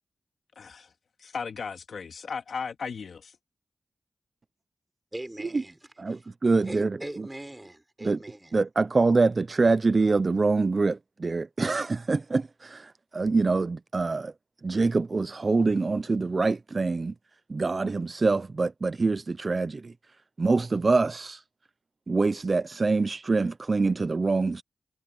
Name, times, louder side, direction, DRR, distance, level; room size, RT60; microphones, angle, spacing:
voice 1, 0.6-0.9 1.2-3.4, left 5 dB, 75° left, 2.1 m, -36 dB
voice 2, 5.1-5.8 6.1-6.2 6.6-8.5, right 1 dB, 15° right, 6.0 m, -39 dB
voice 3, 6.0-7.3 8.0-8.2 8.5-14.3 14.6-17.1 17.5-19.9 20.4-21.4 22.1-24.6, right 3 dB, 40° right, 0.4 m, -25 dB
wide cardioid pair, 90°, 0 cm